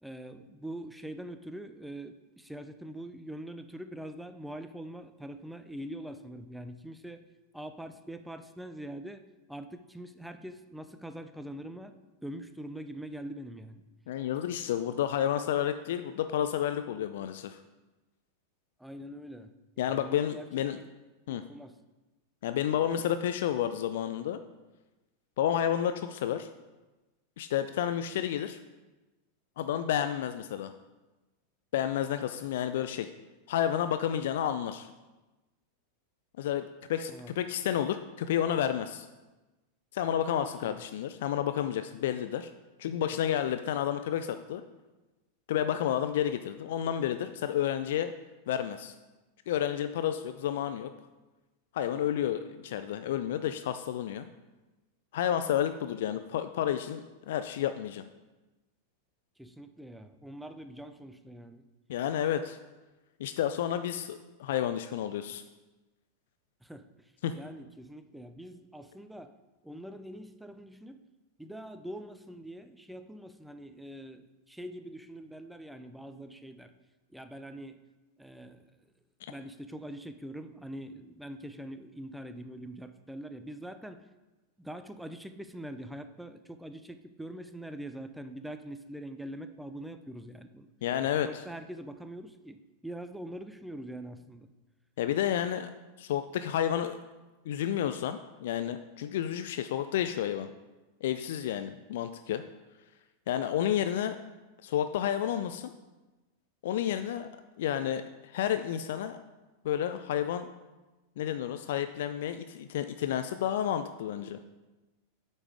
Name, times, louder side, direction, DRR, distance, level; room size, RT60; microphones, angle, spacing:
voice 1, 0.0-7.2 7.5-13.8 18.8-20.5 20.7-20.9 21.3-21.8 37.1-37.3 40.4-40.8 59.4-61.6 66.6-69.3 69.6-71.0 71.4-76.7 77.1-77.8 78.2-78.7 79.3-84.1 84.6-90.7 91.0-94.5, right 1 dB, 5° right, 9 dB, 0.5 m, -44 dB
voice 2, 14.1-17.6 19.8-20.8 21.3-21.4 22.4-24.4 25.4-26.5 27.4-28.6 29.6-30.7 31.7-33.1 33.5-34.9 36.4-39.1 39.9-42.5 42.8-44.6 45.5-48.1 48.5-48.9 49.5-50.9 51.7-54.3 55.1-58.0 61.9-62.6 63.2-65.4 67.2-67.4 90.8-91.4 95.0-95.7 96.0-97.0 97.5-100.5 101.0-102.4 103.3-104.2 104.6-105.7 106.6-107.3 107.6-109.2 109.6-110.5 111.2-114.4, left 10 dB, 55° left, 10 dB, 0.4 m, -30 dB
8.3 x 5.3 x 4.8 m, 1.1 s
figure-of-eight pair, 90°, 0 cm